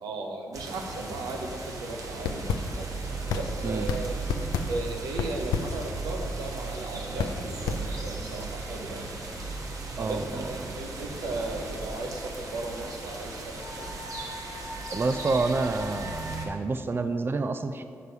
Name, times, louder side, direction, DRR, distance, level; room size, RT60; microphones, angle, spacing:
voice 1, 0.0-4.2 4.6-9.1 10.0-13.9, right 2 dB, 90° right, 2 dB, 0.7 m, -36 dB
sound 1, 0.5-16.5, right 3 dB, 60° right, 1.1 m, -37 dB
sound 2, 2.2-8.4, left 5 dB, 90° left, 0.4 m, -33 dB
voice 2, 10.0-10.7 14.9-17.8, right 3 dB, 35° right, 9 dB, 0.4 m, -29 dB
6.6 x 5.4 x 4.7 m, 2.4 s
supercardioid pair, 40°, 6 cm